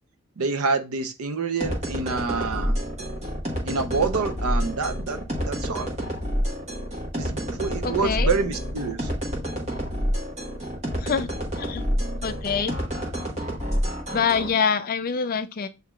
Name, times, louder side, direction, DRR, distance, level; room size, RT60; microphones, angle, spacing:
voice 1, 0.4-2.8 3.6-5.9 7.2-9.1, right 4 dB, 80° right, 0.7 m, -27 dB
sound 1, 1.6-14.5, equal, 30° right, 1.2 m, -28 dB
voice 2, 7.8-8.3 11.0-11.3 11.6-11.9 12.2-12.8 14.1-15.7, left 6 dB, 40° left, 0.4 m, -25 dB
8.0 x 2.8 x 2.3 m
head